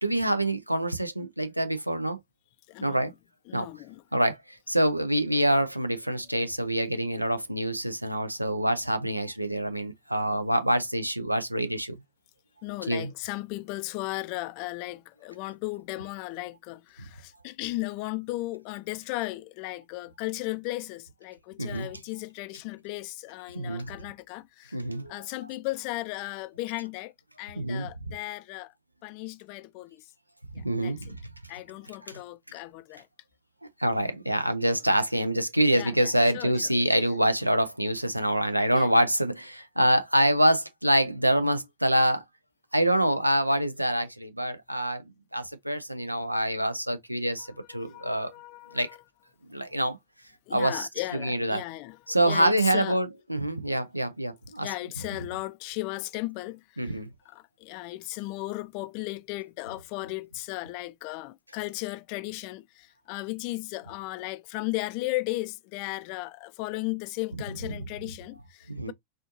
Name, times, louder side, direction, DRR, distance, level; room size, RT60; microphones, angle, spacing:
voice 1, 0.0-2.2 2.8-3.1 3.5-3.7 4.1-11.9 12.9-13.1 21.6-21.9 23.5-23.9 24.7-25.1 27.6-27.9 30.6-31.1 32.1-32.2 33.8-42.2 42.7-45.0 45.3-48.3 48.7-48.9 49.5-50.0 50.5-51.6 52.1-54.7 56.8-57.1 68.7-68.9, right 1 dB, 90° right, 0.5 m, -26 dB
voice 2, 2.7-3.1 3.5-4.0 12.6-24.8 25.1-27.1 27.4-28.7 29.0-30.0 30.6-30.9 31.5-33.1 35.7-36.6 38.7-38.9 47.4-49.0 50.5-52.0 52.3-53.0 54.6-56.9 57.3-68.9, left 20 dB, 45° left, 0.3 m, -36 dB
4.3 x 2.4 x 2.6 m
figure-of-eight pair, 90°, 0 cm